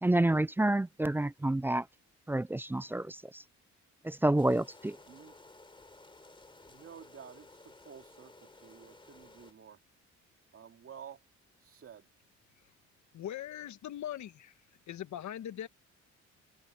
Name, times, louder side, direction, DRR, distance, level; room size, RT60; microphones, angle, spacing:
voice 1, 0.0-1.9 2.3-3.4 4.0-5.0, right 1 dB, 10° right, 0.3 m, -29 dB
sound 1, 4.4-9.5, left 2 dB, 15° left, 3.4 m, -56 dB
voice 2, 6.7-9.8 10.5-11.2 11.6-12.1, right 8 dB, 50° right, 2.5 m, -51 dB
voice 3, 13.1-14.6 14.9-15.7, left 11 dB, 70° left, 1.5 m, -40 dB
cardioid pair, 90°, 30 cm